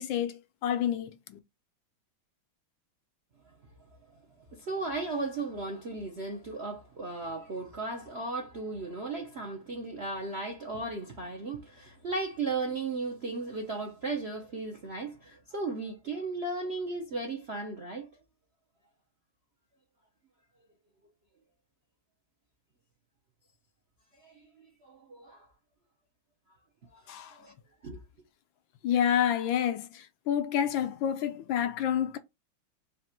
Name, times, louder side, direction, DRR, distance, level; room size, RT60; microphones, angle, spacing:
voice 1, 0.0-1.4 27.1-27.4 28.8-32.2, left 9 dB, 80° left, 1.3 m, -29 dB
voice 2, 4.5-18.1 24.2-24.4 24.8-25.5 26.9-27.5 27.8-28.0, right 3 dB, 55° right, 0.7 m, -36 dB
4.1 x 2.5 x 4.3 m
omnidirectional pair, 2.2 m